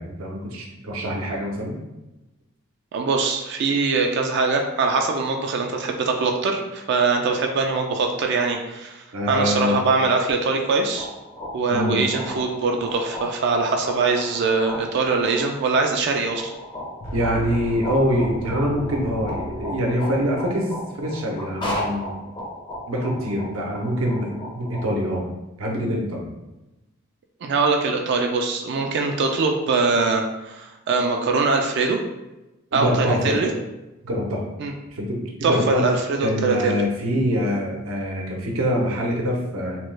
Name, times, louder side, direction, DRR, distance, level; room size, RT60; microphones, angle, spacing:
voice 1, 0.0-1.7 9.1-9.8 11.7-12.0 17.1-20.7 21.0-22.2 22.9-25.3 25.6-26.2 32.7-33.4 34.0-34.4 34.9-35.8 36.2-39.8, equal, 85° right, -1 dB, 0.7 m, -24 dB
voice 2, 2.9-11.1 11.5-16.5 27.4-32.0 32.7-33.5 34.6-34.7 35.4-36.8, right 4 dB, 55° right, 3 dB, 0.3 m, -22 dB
sound 1, 11.0-24.8, left 1 dB, 20° left, 0.5 m, -35 dB
sound 2, 17.0-20.5, equal, 65° left, 1.0 m, -34 dB
3.0 x 2.2 x 3.1 m, 1.0 s
head